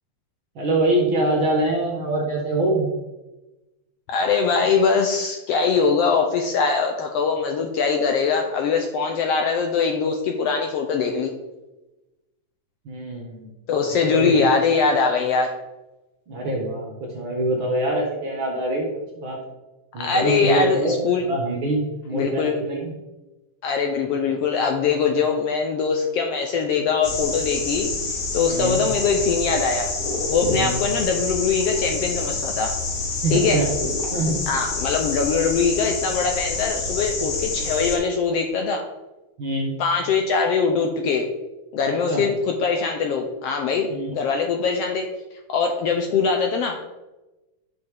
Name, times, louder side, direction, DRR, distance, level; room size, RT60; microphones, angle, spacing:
voice 1, 0.6-2.9 12.9-13.5 13.8-14.4 16.3-18.9 19.1-19.4 19.9-22.9 28.5-28.8 30.5-30.8 33.2-33.7 34.1-34.4 39.4-39.7 41.8-42.2 43.9-44.2, right 1 dB, 50° right, 0 dB, 1.9 m, -24 dB
voice 2, 4.1-11.3 13.7-15.5 20.0-21.2 22.1-22.6 23.6-27.9 28.3-29.9 30.3-32.7 33.3-33.6 34.5-38.8 39.8-41.3 41.7-45.1 45.5-46.9, left 5 dB, 70° left, 3 dB, 1.6 m, -22 dB
sound 1, 27.0-38.0, left 3 dB, 90° left, 3.5 m, -27 dB
11.5 x 5.6 x 3.6 m, 1.1 s
omnidirectional pair, 3.3 m